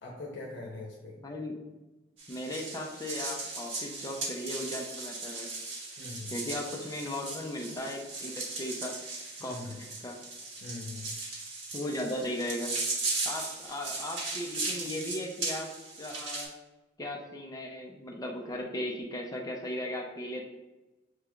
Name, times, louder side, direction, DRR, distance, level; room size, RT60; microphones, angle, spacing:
voice 1, 0.0-1.2 6.0-6.4 9.4-9.8 10.6-11.1, left 2 dB, 70° left, -2 dB, 0.8 m, -42 dB
voice 2, 1.2-1.6 2.3-5.5 6.3-8.9 9.4-10.2 11.7-12.8 13.2-15.7 16.0-16.5 17.0-20.4, left 1 dB, 20° left, -1 dB, 0.5 m, -37 dB
sound 1, 2.2-16.5, right 3 dB, 85° right, 1.3 m, -37 dB
6.5 x 3.2 x 2.4 m, 1.1 s
head